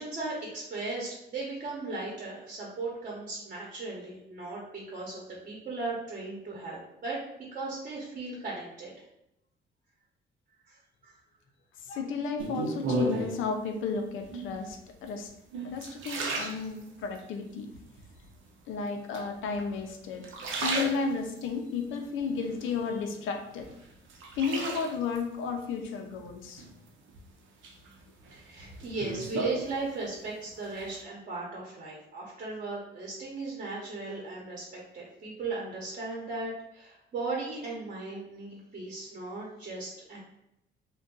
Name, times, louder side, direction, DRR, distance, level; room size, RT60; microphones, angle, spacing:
voice 1, 0.0-7.2 7.5-8.9 10.7-10.8 11.0-11.1 28.3-40.2, right 3 dB, 40° right, -3 dB, 0.9 m, -37 dB
voice 2, 11.8-15.3 15.6-17.7 18.7-20.3 20.6-23.7 24.4-26.6, left 5 dB, 85° left, 4 dB, 0.5 m, -33 dB
sound 1, 12.4-13.5 14.2-14.7 15.3-17.2 17.7-18.3 19.1-19.8 20.1-21.5 22.0-23.2 23.6-25.2 26.6-27.2 27.6-30.2 30.5-31.0, right 2 dB, 80° right, 0.6 m, -35 dB
2.5 x 2.2 x 3.7 m, 0.82 s
cardioid pair, 90°, 20 cm